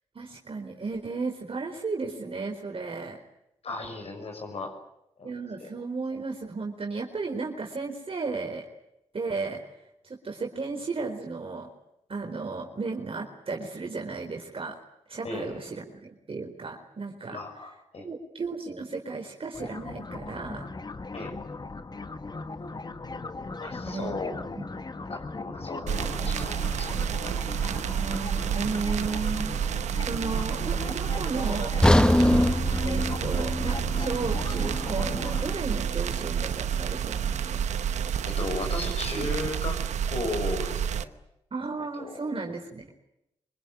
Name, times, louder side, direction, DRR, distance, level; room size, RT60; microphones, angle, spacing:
voice 1, 0.1-3.2 5.2-8.7 9.1-9.6 10.0-11.7 12.1-14.7 15.1-17.4 18.0-20.7 23.8-24.2 24.6-24.7 27.6-29.5 30.0-31.7 32.8-37.7 39.1-39.3 41.5-42.9, right 4 dB, 55° right, 1 dB, 4.3 m, -34 dB
voice 2, 3.6-4.7 5.2-5.3 5.6-5.7 15.2-15.8 17.3-18.1 21.1-21.3 23.6-24.3 25.1-27.0 38.2-39.8 40.1-41.1 41.9-42.3, left 2 dB, 65° left, 2 dB, 6.4 m, -35 dB
sound 1, 19.5-35.5, left 3 dB, 35° left, 1.6 m, -38 dB
sound 2, 25.9-41.0, right 8 dB, 90° right, 0.9 m, -29 dB
sound 3, 31.8-35.9 36.2-36.4 37.0-37.1, left 1 dB, 5° left, 1.0 m, -24 dB
25.5 x 19.5 x 10.0 m, 0.82 s
cardioid pair, 50°, 12 cm